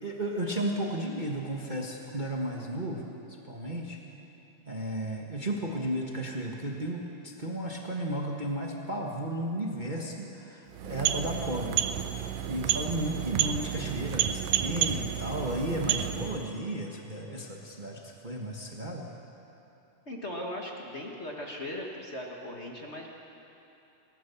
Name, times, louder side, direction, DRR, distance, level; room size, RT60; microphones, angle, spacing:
voice 1, 0.0-3.0 3.4-4.0 4.7-11.8 12.5-19.1, right 1 dB, 55° right, -1 dB, 0.5 m, -34 dB
sound 1, 10.7-16.5, right 11 dB, 90° right, 2.4 m, -30 dB
voice 2, 20.0-23.1, left 1 dB, 35° left, -1 dB, 1.1 m, -38 dB
28.5 x 14.5 x 7.1 m, 3.0 s
omnidirectional pair, 3.7 m